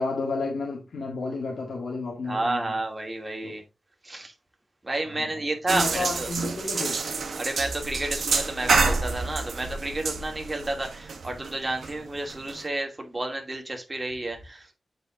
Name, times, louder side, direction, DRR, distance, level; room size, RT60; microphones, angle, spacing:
voice 1, 0.0-2.7 3.4-3.6 5.0-5.3 5.7-7.1, left 3 dB, 85° left, 1.9 m, -31 dB
voice 2, 2.3-3.6 4.0-4.3 4.8-6.3 7.4-14.7, right 2 dB, 25° right, 2.5 m, -31 dB
sound 1, 5.7-12.7, right 4 dB, 85° right, 1.5 m, -28 dB
8.0 x 4.9 x 3.9 m
cardioid pair, 70°, 0 cm